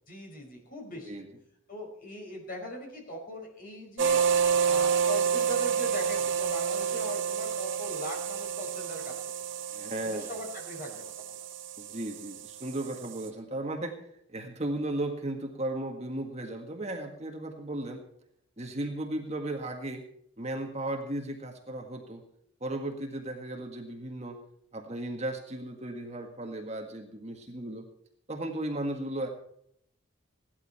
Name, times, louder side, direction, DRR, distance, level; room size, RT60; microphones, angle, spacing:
voice 1, 0.1-1.2 1.7-4.2 4.6-9.1 9.5-9.6 10.0-11.4, equal, 45° left, 0 dB, 5.3 m, -40 dB
sound 1, 4.0-13.3, right 7 dB, 65° right, 1.5 m, -29 dB
voice 2, 9.7-10.3 11.8-14.0 14.3-18.0 18.6-20.0 20.4-22.2 22.6-24.4 24.7-27.9 28.3-29.3, right 1 dB, 30° right, 3 dB, 1.7 m, -35 dB
17.0 x 12.0 x 4.3 m, 0.70 s
head